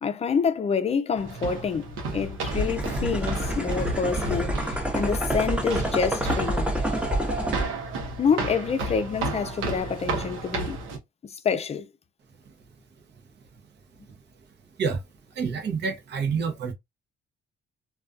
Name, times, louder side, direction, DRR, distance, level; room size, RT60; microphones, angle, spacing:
voice 1, 0.0-4.6 4.9-6.7 8.2-10.8 11.2-11.9, left 6 dB, 30° left, 0.4 m, -27 dB
sound 1, 1.2-11.0, right 2 dB, 90° right, 0.8 m, -32 dB
sound 2, 2.5-7.7, equal, 5° right, 0.7 m, -28 dB
voice 2, 15.3-16.7, right 5 dB, 60° right, 0.8 m, -28 dB
2.3 x 2.3 x 2.4 m
cardioid pair, 90°, 20 cm